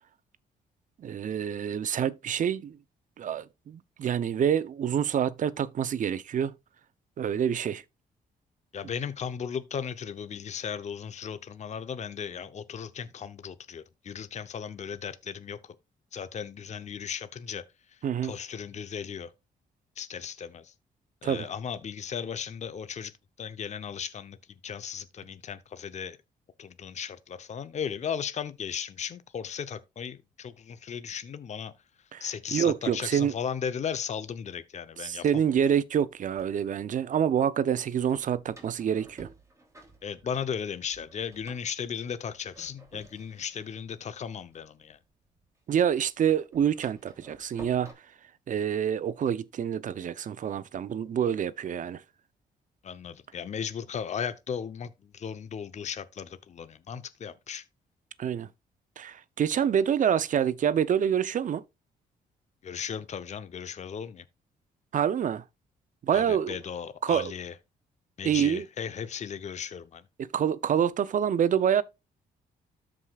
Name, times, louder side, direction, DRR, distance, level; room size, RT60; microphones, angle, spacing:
voice 1, 1.0-2.8 3.2-6.5 7.2-7.8 18.0-18.3 21.2-21.5 32.1-33.3 35.0-39.3 45.7-47.9 48.5-52.0 58.2-58.5 59.0-61.6 64.9-65.4 66.0-66.6 67.0-67.3 68.2-68.6 70.2-71.8, right 8 dB, 55° right, 0.6 m, -27 dB
voice 2, 8.7-15.6 16.1-17.6 18.2-19.3 20.0-20.7 21.2-23.1 23.4-24.4 24.6-26.2 26.6-31.7 32.2-35.4 40.0-45.0 52.8-57.6 62.6-64.2 66.1-67.5 68.2-70.0, left 7 dB, 45° left, 0.7 m, -36 dB
Door, 36.1-36.9 38.1-40.6 40.9-45.4 45.7-47.9, right 2 dB, 20° right, 2.8 m, -53 dB
13.5 x 4.9 x 2.4 m
cardioid pair, 75°, 16 cm